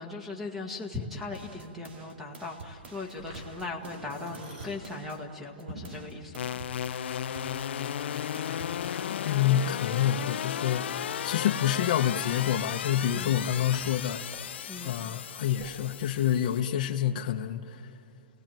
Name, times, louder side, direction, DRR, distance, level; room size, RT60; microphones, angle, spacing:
voice 1, 0.0-6.6 13.1-13.4 14.7-15.0, left 3 dB, 5° right, 3 dB, 1.5 m, -39 dB
sound 1, 1.3-5.2 5.6-9.2, right 4 dB, 80° right, 2.5 m, -49 dB
sound 2, 2.5-15.7, equal, 50° right, 7.0 m, -50 dB
sound 3, 6.3-16.6, left 9 dB, 80° left, 0.6 m, -35 dB
voice 2, 9.1-10.9 11.2-14.2 14.8-17.9, left 10 dB, 45° left, 1 dB, 0.9 m, -28 dB
30.0 x 18.5 x 9.0 m, 2.8 s
supercardioid pair, 180°, 6 cm